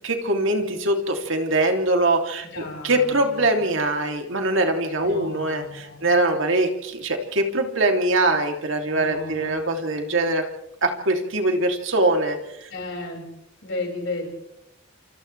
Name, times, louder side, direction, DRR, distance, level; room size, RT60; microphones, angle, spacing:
voice 1, 0.0-10.4 10.8-12.7, right 2 dB, 65° right, 3 dB, 3.0 m, -23 dB
voice 2, 2.4-3.7 5.0-6.1 8.9-9.6 12.7-13.3 13.6-14.3, left 2 dB, 60° left, 0 dB, 6.4 m, -34 dB
29.0 x 28.0 x 3.4 m, 0.84 s
head